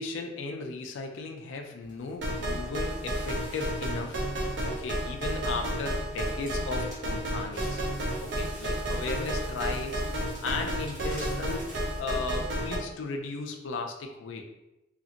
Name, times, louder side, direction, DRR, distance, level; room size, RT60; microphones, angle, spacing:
voice 1, 0.0-7.8 8.2-10.0 10.4-11.6 12.0-14.4, left 3 dB, 70° left, 3 dB, 0.3 m, -36 dB
Crackle, 1.8-12.0, right 1 dB, 40° right, 1.0 m, -49 dB
sound 1, 2.2-12.8, right 1 dB, 60° right, 0.5 m, -32 dB
2.7 x 2.7 x 2.5 m, 0.93 s
head